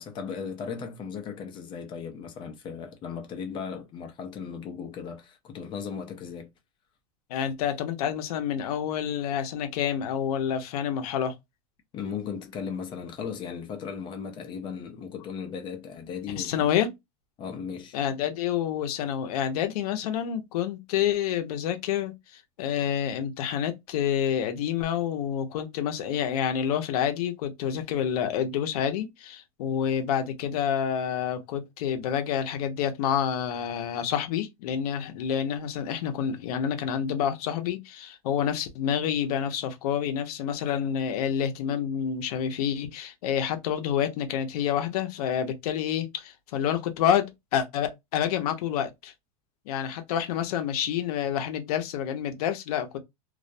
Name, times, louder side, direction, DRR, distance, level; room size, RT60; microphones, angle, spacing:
voice 1, 0.0-6.5 11.9-16.7 17.4-18.0, left 6 dB, 25° left, 0.5 m, -36 dB
voice 2, 7.3-11.4 16.4-16.9 17.9-49.1 49.7-53.0, left 9 dB, 75° left, 0.6 m, -28 dB
2.3 x 2.1 x 2.6 m
supercardioid pair, 155°, 19 cm